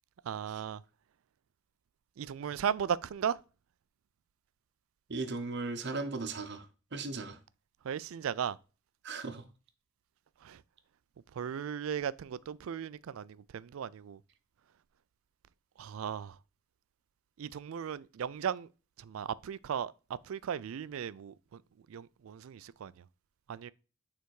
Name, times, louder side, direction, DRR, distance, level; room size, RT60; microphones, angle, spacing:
voice 1, 0.3-0.8 2.2-3.4 7.9-8.6 10.5-10.6 11.4-13.3 13.5-14.2 15.8-16.3 17.4-18.7 19.1-19.9 20.3-21.3 21.9-22.9 23.5-23.7, right 8 dB, 70° right, 0.3 m, -36 dB
voice 2, 5.1-7.4 9.0-9.4, right 3 dB, 50° right, 0.8 m, -37 dB
6.8 x 3.4 x 4.6 m
head